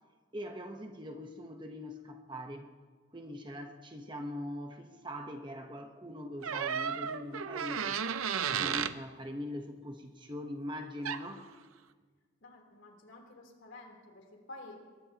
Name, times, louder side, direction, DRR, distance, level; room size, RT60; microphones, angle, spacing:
voice 1, 0.3-2.7 3.1-8.0 8.5-11.5, left 1 dB, 20° right, 4 dB, 1.0 m, -42 dB
sound 1, 6.4-9.0 11.0-11.3, right 7 dB, 85° right, 0.7 m, -33 dB
voice 2, 12.4-14.8, left 2 dB, 65° left, 0 dB, 3.6 m, -51 dB
22.5 x 21.5 x 3.0 m, 1.5 s
head